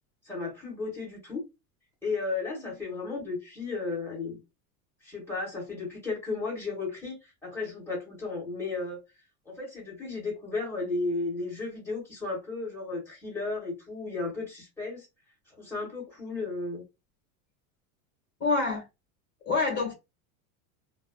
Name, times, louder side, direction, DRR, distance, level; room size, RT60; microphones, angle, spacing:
voice 1, 0.2-1.4 2.0-4.4 5.0-9.0 9.5-15.1 15.6-16.8, left 3 dB, 5° left, 1.9 m, -34 dB
voice 2, 18.4-18.8 19.4-19.9, left 3 dB, 25° left, 1.6 m, -26 dB
3.2 x 2.4 x 2.3 m
supercardioid pair, 140°, 43 cm